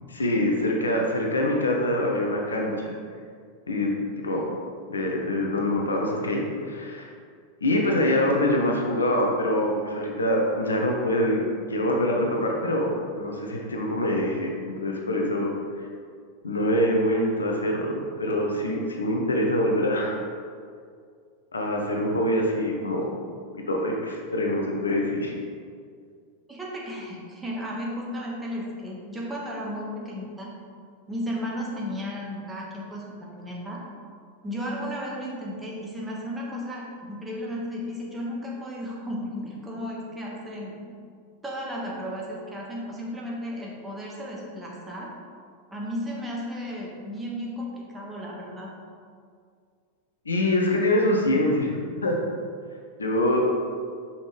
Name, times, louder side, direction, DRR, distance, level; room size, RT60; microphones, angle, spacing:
voice 1, 0.1-2.9 3.7-3.9 4.2-4.4 4.9-7.1 7.6-11.4 11.7-12.9 13.1-15.8 16.4-20.2 21.5-23.1 23.5-25.3 50.2-52.2 53.0-53.4, left 1 dB, 80° left, 0 dB, 0.8 m, -25 dB
voice 2, 26.5-30.5 31.1-33.8 34.4-40.8 41.4-45.1 45.7-48.7, equal, 10° right, -3 dB, 1.5 m, -34 dB
6.2 x 5.7 x 3.2 m, 2.1 s
figure-of-eight pair, 90°, 0 cm